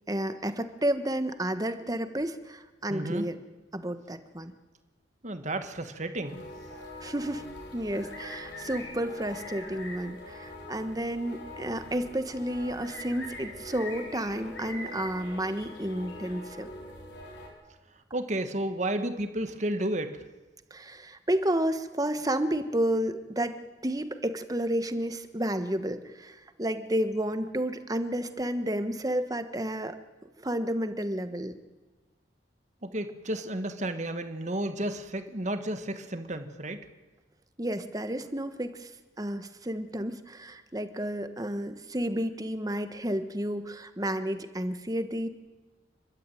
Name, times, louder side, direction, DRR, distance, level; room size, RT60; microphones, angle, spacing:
voice 1, 0.1-3.4 3.7-4.5 7.0-7.5 7.7-16.7 20.7-30.0 30.4-31.6 37.6-38.9 39.2-45.3, right 1 dB, 20° right, 9 dB, 1.3 m, -31 dB
voice 2, 2.9-3.3 5.2-6.4 18.1-20.2 32.8-36.9, right 1 dB, 40° right, 8 dB, 1.7 m, -32 dB
sound 1, 6.2-17.5, left 1 dB, 70° left, 6.1 m, -43 dB
30.0 x 12.5 x 9.2 m, 1.2 s
head